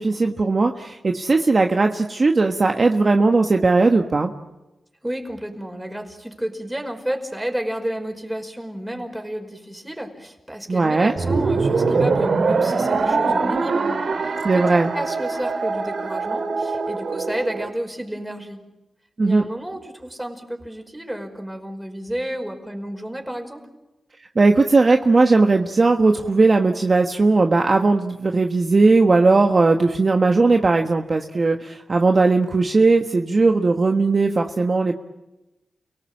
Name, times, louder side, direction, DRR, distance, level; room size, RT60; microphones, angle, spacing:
voice 1, 0.0-4.3 10.7-11.1 14.4-14.9 19.2-19.5 24.3-34.9, right 3 dB, 45° right, 4 dB, 1.3 m, -18 dB
voice 2, 5.0-18.6 19.2-23.6, right 1 dB, 10° right, 4 dB, 5.2 m, -31 dB
sound 1, 11.2-17.7, right 4 dB, 70° right, 2.3 m, -23 dB
30.0 x 18.0 x 8.7 m, 1.0 s
cardioid pair, 65°, 0 cm